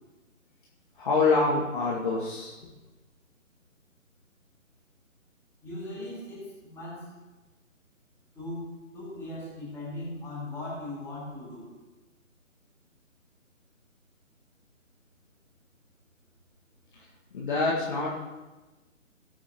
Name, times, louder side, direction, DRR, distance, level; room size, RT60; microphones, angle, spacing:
voice 1, 1.0-2.6 17.3-18.2, left 3 dB, 40° left, -5 dB, 1.8 m, -26 dB
voice 2, 5.6-7.1 8.3-8.7 8.9-11.7, left 1 dB, 5° left, -8 dB, 4.1 m, -38 dB
19.0 x 8.4 x 2.9 m, 1.1 s
figure-of-eight pair, 145°, 41 cm